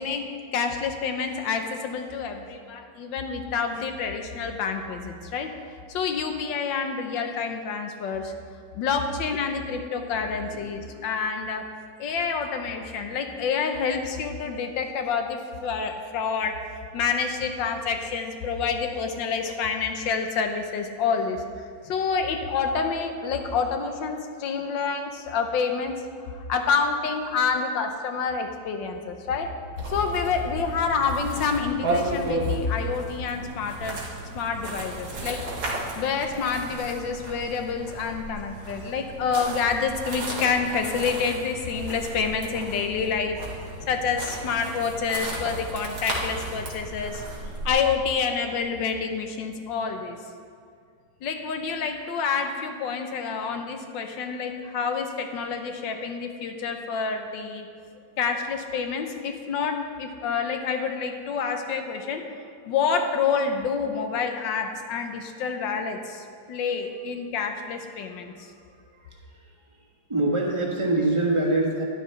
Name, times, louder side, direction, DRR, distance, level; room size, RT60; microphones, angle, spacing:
voice 1, 0.0-5.5 5.9-8.3 8.7-11.7 12.0-16.6 16.9-26.0 26.3-29.5 29.9-34.0 34.3-35.4 36.0-43.4 43.9-47.2 47.6-50.2 51.2-57.7 58.2-62.2 62.6-68.3, left 5 dB, 80° left, 5 dB, 1.6 m, -28 dB
sound 1, 29.8-47.7, right 2 dB, 75° right, 2.3 m, -34 dB
voice 2, 68.7-69.5 70.1-71.8, right 2 dB, 20° right, -2 dB, 1.3 m, -25 dB
12.0 x 11.0 x 3.3 m, 2.3 s
omnidirectional pair, 2.0 m